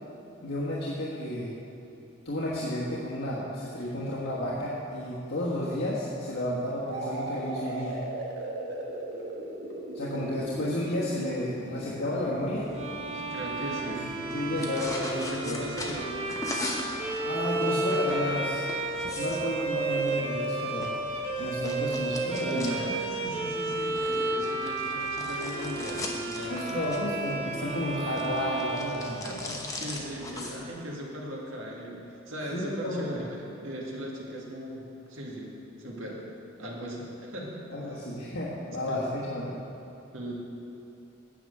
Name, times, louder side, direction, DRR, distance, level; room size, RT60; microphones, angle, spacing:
voice 1, 0.4-1.5 2.2-8.0 9.9-12.7 13.7-13.8 14.2-15.1 15.4-15.6 17.2-18.7 19.1-20.9 21.4-22.8 26.5-29.5 32.5-33.2 37.7-39.5, left 1 dB, 90° left, -8 dB, 1.5 m, -32 dB
sound 1, 6.9-14.5, right 1 dB, 60° right, 1.4 m, -38 dB
sound 2, 12.6-30.7, left 2 dB, 15° left, 0.8 m, -41 dB
Bowed string instrument, 12.7-29.7, right 2 dB, 30° right, 1.0 m, -32 dB
voice 2, 13.1-14.1 14.4-16.3 22.4-27.0 29.2-36.2 36.6-38.0 38.9-39.1 40.1-40.3, equal, 85° right, -3 dB, 1.9 m, -38 dB
9.0 x 6.1 x 7.8 m, 2.8 s
head